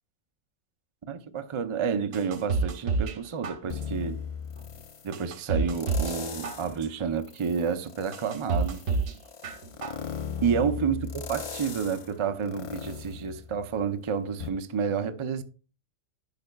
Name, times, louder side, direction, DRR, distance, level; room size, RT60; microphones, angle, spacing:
voice 1, 1.1-4.2 5.0-8.8 10.4-15.4, right 6 dB, 50° right, 0.3 m, -30 dB
sound 1, 2.1-3.2 3.4-4.1 4.6-4.7 5.1-6.2 6.4-7.1 7.6-7.7 8.1-9.1 9.4-10.1 10.4-10.5, right 4 dB, 85° right, 1.3 m, -29 dB
sound 2, 3.7-5.1 5.7-6.8 7.2-13.9 14.4-14.5, left 7 dB, 45° left, 0.4 m, -38 dB
10.5 x 5.8 x 2.2 m
omnidirectional pair, 1.3 m